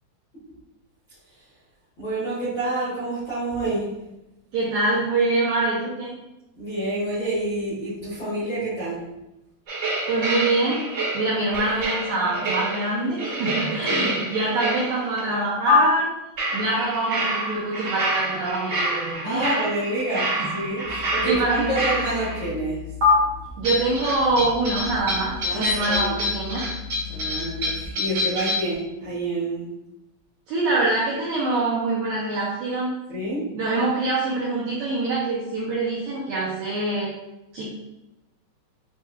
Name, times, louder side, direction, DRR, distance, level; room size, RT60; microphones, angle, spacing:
voice 1, 2.0-3.9 6.5-9.0 13.9-14.2 19.2-22.8 25.4-26.1 27.1-29.7 33.1-33.4, right 1 dB, 70° left, -11 dB, 1.1 m, -28 dB
voice 2, 4.5-6.1 10.1-10.8 11.1-16.1 16.5-19.6 20.4-20.5 21.2-21.8 23.6-26.7 30.5-33.0 33.5-37.1 37.5-37.7, right 2 dB, 85° right, -6 dB, 2.0 m, -25 dB
sound 1, 9.7-15.2 15.7-15.8 16.4-22.5 23.0-23.1 23.6-28.7, left 1 dB, 55° right, 1.3 m, -27 dB
sound 2, 20.8-27.9, left 8 dB, 90° left, 3.0 m, -38 dB
8.0 x 2.7 x 2.4 m, 0.92 s
omnidirectional pair, 5.2 m